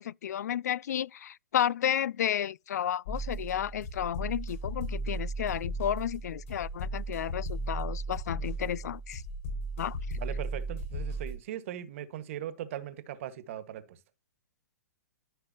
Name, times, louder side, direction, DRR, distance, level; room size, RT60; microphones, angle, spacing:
voice 1, 0.0-9.2 9.8-10.0, left 10 dB, 70° left, 0.4 m, -32 dB
sound 1, 3.1-11.4, right 2 dB, 50° left, 5.5 m, -36 dB
voice 2, 10.1-14.0, right 11 dB, 50° right, 1.6 m, -39 dB
14.5 x 5.5 x 2.8 m
hypercardioid pair, 150°, 9 cm